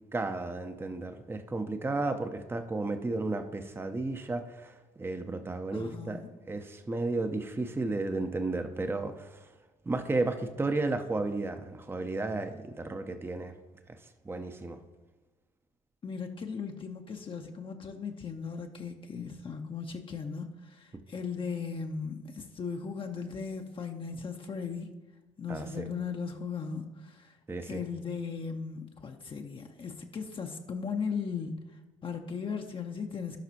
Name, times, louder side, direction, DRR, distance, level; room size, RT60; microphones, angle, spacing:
voice 1, 0.1-6.2 6.5-9.5 9.9-13.5 13.9-14.0 14.2-14.8 25.5-25.8 27.5-27.8, right 2 dB, 15° right, 8 dB, 0.8 m, -33 dB
voice 2, 5.7-6.3 16.0-24.9 25.4-27.4 27.6-33.4, left 5 dB, 30° left, 3 dB, 0.8 m, -37 dB
16.5 x 5.8 x 2.9 m, 1.2 s
figure-of-eight pair, 55°, 18 cm